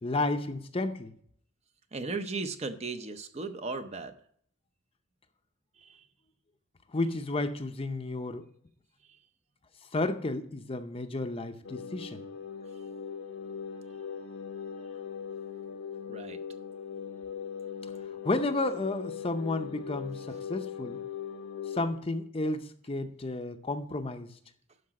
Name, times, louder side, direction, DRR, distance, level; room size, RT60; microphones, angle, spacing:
voice 1, 0.0-1.1 6.9-8.5 9.9-12.2 18.2-21.0 21.7-24.3, left 2 dB, 25° left, 8 dB, 0.6 m, -32 dB
voice 2, 1.9-4.1 5.8-6.0 16.1-16.4, right 3 dB, 30° right, 9 dB, 0.6 m, -36 dB
sound 1, 11.6-21.9, left 7 dB, 75° left, 1.0 m, -40 dB
12.0 x 4.9 x 4.8 m, 0.62 s
head